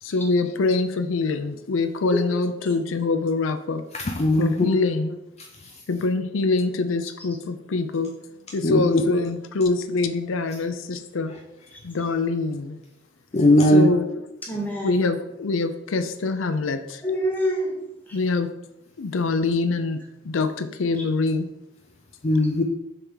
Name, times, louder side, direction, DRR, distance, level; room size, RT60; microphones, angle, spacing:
voice 1, 0.0-3.8 4.4-5.2 5.9-8.1 8.5-11.3 11.8-12.8 13.7-14.0 14.8-17.0 18.1-18.5 19.0-21.5, left 3 dB, 85° left, 9 dB, 0.5 m, -24 dB
voice 2, 3.9-4.8 8.6-9.0 13.3-13.9 22.2-22.6, left 1 dB, 35° left, 3 dB, 0.6 m, -19 dB
voice 3, 14.4-15.0 17.0-17.7 18.1-18.2 21.0-21.1, equal, 10° left, -3 dB, 2.1 m, -27 dB
6.6 x 3.6 x 6.1 m, 0.89 s
head